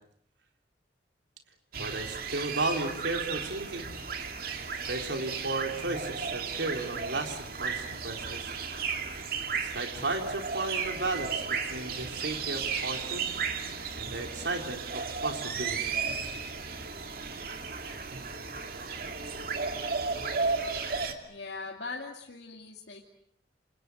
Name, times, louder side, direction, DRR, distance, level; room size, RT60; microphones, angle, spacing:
sound 1, 1.7-21.1, right 5 dB, 55° right, 2.6 m, -34 dB
voice 1, 1.7-3.9 4.9-8.5 9.6-13.3 14.0-15.8, right 2 dB, 85° right, 4 dB, 4.0 m, -34 dB
voice 2, 21.3-23.0, left 3 dB, 75° left, -1 dB, 2.6 m, -40 dB
29.5 x 26.5 x 6.4 m, 0.65 s
head